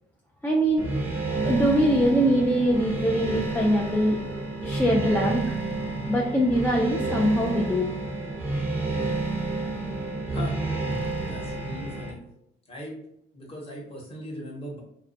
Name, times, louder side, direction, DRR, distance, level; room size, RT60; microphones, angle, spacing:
voice 1, 0.4-0.9 1.5-4.2 4.6-5.6 6.1-7.9, right 1 dB, 10° left, -2 dB, 0.3 m, -22 dB
sound 1, 0.8-12.1, right 2 dB, 10° right, 0.7 m, -30 dB
voice 2, 11.3-12.2 12.7-13.0 13.3-14.8, equal, 30° left, -3 dB, 1.1 m, -38 dB
2.3 x 2.1 x 2.6 m, 0.74 s
cardioid pair, 90°, 20 cm